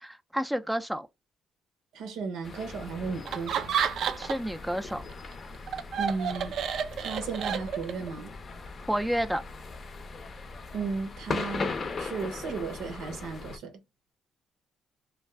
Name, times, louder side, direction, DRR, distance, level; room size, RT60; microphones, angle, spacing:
voice 1, 0.0-1.1 4.2-5.0 8.9-9.4, equal, 5° right, 0.4 m, -30 dB
voice 2, 1.9-3.7 6.0-6.5 7.0-8.3 10.7-13.8, right 5 dB, 85° right, 0.8 m, -35 dB
sound 1, 2.4-13.6, left 4 dB, 45° left, 0.5 m, -39 dB
Laughter, 3.3-4.6 4.9-8.1, right 7 dB, 70° right, 0.4 m, -30 dB
2.5 x 2.3 x 3.2 m
cardioid pair, 90°, 0 cm